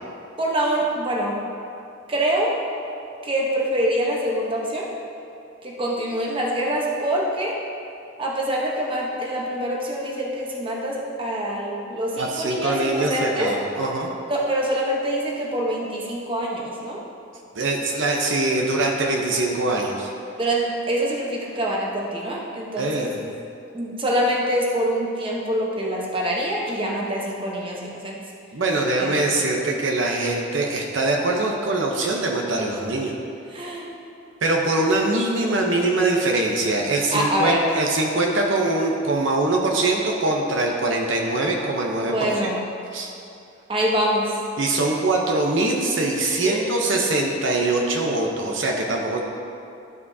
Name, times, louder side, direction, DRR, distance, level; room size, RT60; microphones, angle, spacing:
voice 1, 0.4-1.4 2.1-2.6 3.2-4.9 5.6-7.6 8.2-13.5 14.3-17.0 20.4-23.1 23.7-28.2 29.0-29.1 33.5-33.8 37.1-37.6 42.0-42.6 43.7-44.3 46.4-46.7, right 1 dB, 25° right, -2 dB, 0.9 m, -25 dB
voice 2, 12.2-14.1 17.6-20.1 22.8-23.3 28.5-33.1 34.4-42.3 42.9-43.1 44.6-49.2, right 2 dB, 70° right, 0 dB, 0.8 m, -23 dB
12.0 x 5.1 x 2.7 m, 2.6 s
head